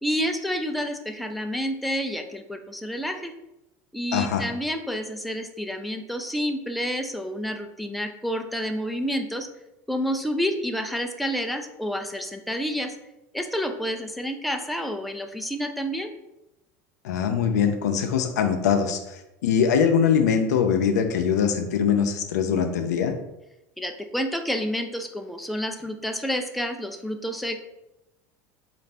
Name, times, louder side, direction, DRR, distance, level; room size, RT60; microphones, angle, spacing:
voice 1, 0.0-3.3 3.9-9.5 9.9-13.0 13.3-16.1 23.8-27.6, equal, ahead, 6 dB, 0.3 m, -29 dB
voice 2, 4.1-4.5 17.0-23.1, left 7 dB, 90° left, 6 dB, 0.5 m, -22 dB
4.0 x 2.5 x 3.3 m, 0.90 s
supercardioid pair, 110°, 9 cm